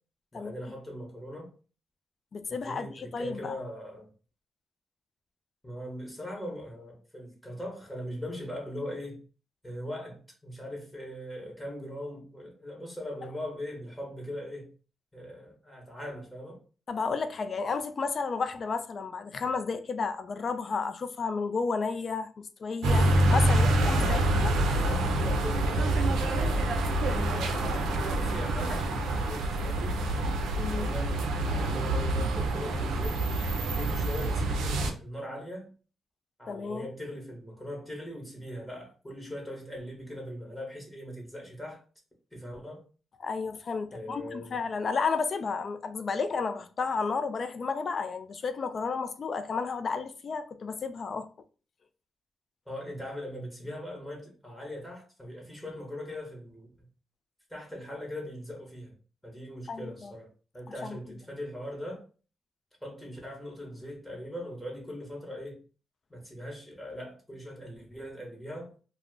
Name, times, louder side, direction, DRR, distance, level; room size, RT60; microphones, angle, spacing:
voice 1, 0.3-1.5 2.5-4.1 5.6-9.2 9.6-14.7 15.1-16.6 23.2-30.0 30.7-33.2 33.5-35.7 36.4-41.8 42.3-42.8 43.9-44.6 52.7-56.7 57.5-58.9 59.2-62.0 62.8-65.6 66.1-68.7, equal, 15° left, 1.1 m, -40 dB
voice 2, 2.3-3.5 16.9-24.5 30.6-30.9 36.5-36.9 43.2-51.3 59.7-60.1 60.8-61.0, left 4 dB, 55° left, 0.4 m, -32 dB
sound 1, 22.8-34.9, right 1 dB, 90° right, 0.4 m, -26 dB
2.3 x 2.1 x 3.6 m
cardioid pair, 70°, 0 cm